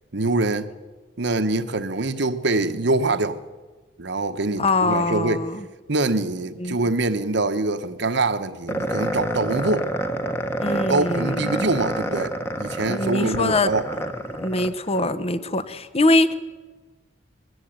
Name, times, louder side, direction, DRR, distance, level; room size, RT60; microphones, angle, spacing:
voice 1, 0.1-0.7 1.2-3.4 4.0-5.5 5.9-9.9 10.7-13.8, right 2 dB, 65° right, 1.2 m, -24 dB
voice 2, 4.6-5.6 6.6-6.8 10.6-11.7 12.8-13.7 14.4-16.3, left 2 dB, 35° left, 1.1 m, -23 dB
sound 1, 8.7-15.1, equal, 15° left, 1.4 m, -28 dB
21.5 x 14.5 x 8.9 m
head